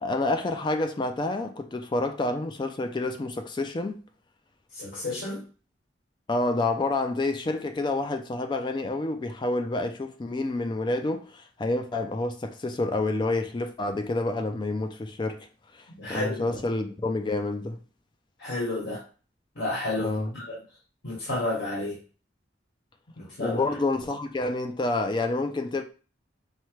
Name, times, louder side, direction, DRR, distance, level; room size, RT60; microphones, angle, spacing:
voice 1, 0.0-4.0 6.3-15.5 15.7-17.8 20.0-20.3 23.4-25.8, left 2 dB, 25° left, 0.3 m, -28 dB
voice 2, 4.7-5.4 16.0-16.6 18.4-19.0 19.5-20.4 21.0-22.0 23.2-23.6, left 2 dB, 70° left, 1.5 m, -31 dB
5.6 x 2.2 x 3.0 m
head